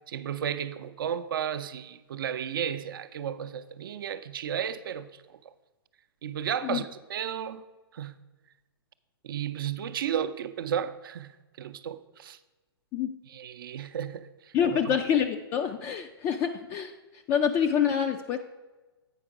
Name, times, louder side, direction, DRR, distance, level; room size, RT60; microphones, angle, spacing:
voice 1, 0.1-5.1 6.2-7.6 7.9-8.1 9.2-11.3 11.6-12.4 13.3-14.3 14.7-15.0, right 9 dB, 60° right, 0.5 m, -33 dB
voice 2, 14.5-16.9 17.3-18.4, left 8 dB, 20° left, 0.3 m, -26 dB
8.7 x 5.0 x 4.8 m
figure-of-eight pair, 120°, 13 cm